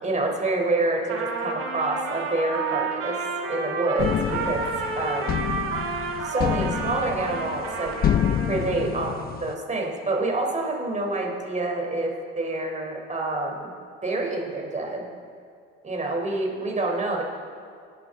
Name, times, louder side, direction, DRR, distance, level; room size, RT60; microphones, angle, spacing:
voice 1, 0.0-3.2 3.5-4.1 4.5-4.7 4.9-5.4 6.2-7.9 8.5-13.7 14.0-15.0 15.8-17.2, right 2 dB, 25° right, 1 dB, 4.0 m, -27 dB
Trumpet, 1.0-8.9, right 4 dB, 50° right, 3.4 m, -31 dB
sound 1, 4.0-9.5, left 9 dB, 30° left, 0.5 m, -28 dB
26.0 x 11.5 x 3.9 m, 2.3 s
hypercardioid pair, 80°, 31 cm